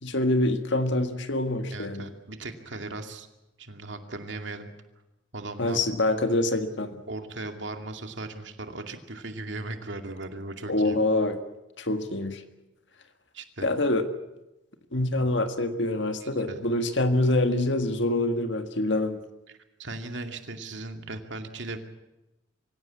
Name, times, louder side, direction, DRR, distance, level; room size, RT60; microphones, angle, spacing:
voice 1, 0.0-2.1 5.6-7.0 10.7-11.4 11.8-12.4 13.6-14.0 14.9-19.2, left 2 dB, 65° left, 7 dB, 1.8 m, -25 dB
voice 2, 1.7-3.3 3.6-4.7 5.3-5.8 7.1-11.0 13.3-13.7 16.2-16.6 19.8-21.8, right 2 dB, 65° right, 6 dB, 2.4 m, -37 dB
24.5 x 16.5 x 8.5 m, 0.98 s
head